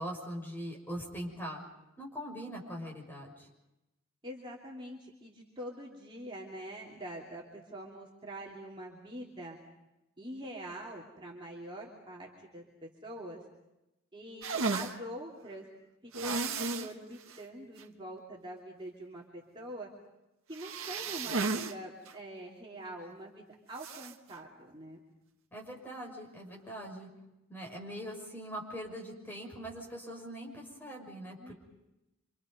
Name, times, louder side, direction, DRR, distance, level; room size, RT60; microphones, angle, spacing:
voice 1, 0.0-1.6 2.0-3.5 25.5-27.1 27.5-31.5, equal, 10° left, -1 dB, 6.1 m, -42 dB
voice 2, 4.2-9.6 10.2-13.4 14.1-15.7 16.2-19.9 20.5-25.0 31.4-31.5, right 1 dB, 25° right, -4 dB, 3.1 m, -45 dB
sound 1, 14.4-14.9 16.1-16.9 17.3-17.4 17.8-17.9 20.5-21.7 22.1-22.2 23.8-24.1, right 4 dB, 75° right, 1.6 m, -33 dB
27.0 x 27.0 x 5.4 m, 0.94 s
head